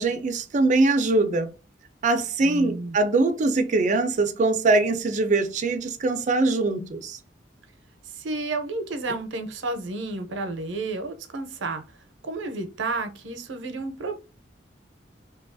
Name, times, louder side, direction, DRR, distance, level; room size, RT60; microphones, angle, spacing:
voice 1, 0.0-1.5 2.0-7.2, right 3 dB, 40° right, 0.4 m, -22 dB
voice 2, 2.4-3.0 8.1-11.8 12.2-14.2, right 3 dB, 90° right, 0.6 m, -31 dB
2.7 x 2.3 x 2.5 m
head